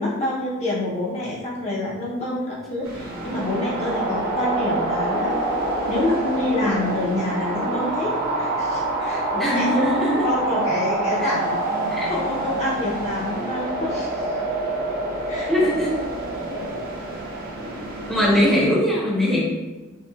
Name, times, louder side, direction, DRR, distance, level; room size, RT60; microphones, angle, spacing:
voice 1, 0.0-5.4 5.9-9.7 10.2-11.6 12.0-14.3 15.3-15.7 16.5-16.9 18.1-18.4, left 1 dB, 30° left, -6 dB, 0.8 m, -27 dB
sound 1, 2.8-18.6, right 2 dB, 45° right, 1.2 m, -26 dB
voice 2, 9.4-10.3 11.2-11.3 11.9-12.1 15.5-15.9 18.0-19.4, equal, ahead, -7 dB, 0.9 m, -21 dB
5.5 x 2.3 x 2.4 m, 1.2 s
head